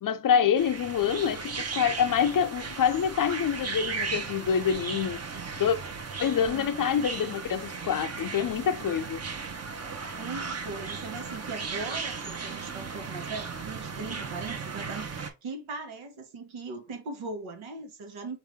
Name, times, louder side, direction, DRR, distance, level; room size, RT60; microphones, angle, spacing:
voice 1, 0.0-5.2 5.6-5.8 6.2-9.2, left 8 dB, 45° left, 0.5 m, -26 dB
sound 1, 0.6-15.3, right 5 dB, 30° right, 0.8 m, -36 dB
voice 2, 6.3-6.7 10.0-18.4, right 3 dB, 85° right, 1.3 m, -39 dB
4.0 x 2.8 x 3.6 m
cardioid pair, 70°, 47 cm